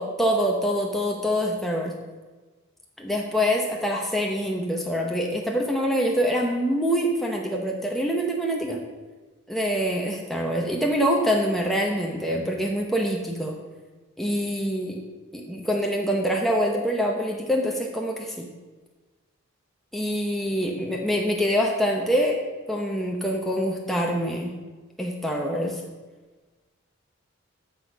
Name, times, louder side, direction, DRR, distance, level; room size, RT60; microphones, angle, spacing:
voice 1, 0.0-1.9 3.0-8.8 9.5-13.6 14.2-15.0 15.3-18.5 19.9-22.4 22.7-24.5 25.0-25.8, equal, ahead, 0 dB, 0.8 m, -25 dB
12.5 x 4.2 x 6.0 m, 1.3 s
head